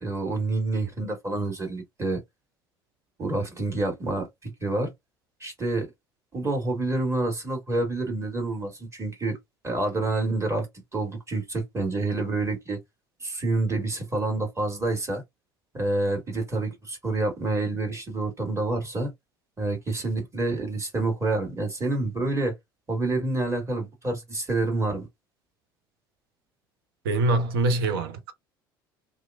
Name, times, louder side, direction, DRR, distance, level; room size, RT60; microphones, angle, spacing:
voice 1, 0.0-2.2 3.2-4.9 5.4-5.9 6.3-9.4 9.6-10.7 10.9-12.8 13.2-15.2 15.7-19.1 19.6-22.5 22.9-25.1, right 2 dB, 25° right, 1.5 m, -28 dB
voice 2, 27.0-28.3, right 2 dB, 75° right, 0.6 m, -24 dB
2.8 x 2.4 x 2.2 m
figure-of-eight pair, 60°, 12 cm